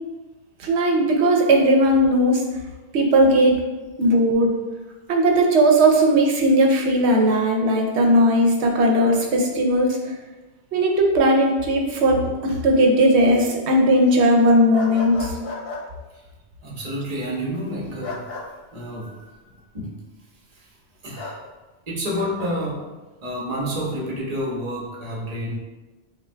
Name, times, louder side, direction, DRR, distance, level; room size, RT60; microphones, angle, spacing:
voice 1, 0.6-2.4 2.9-3.6 4.0-4.5 5.1-10.1 10.7-15.3, right 1 dB, 90° right, 1 dB, 0.9 m, -17 dB
sound 1, 14.7-15.8 18.0-18.5 21.2-21.4 22.1-22.5, left 3 dB, 70° left, 0.8 m, -34 dB
voice 2, 16.6-18.2 18.7-20.0 20.5-20.7 21.0-21.4 21.9-22.9 23.2-25.6, equal, 40° right, -4 dB, 0.9 m, -29 dB
5.4 x 2.3 x 2.2 m, 1.2 s
omnidirectional pair, 1.1 m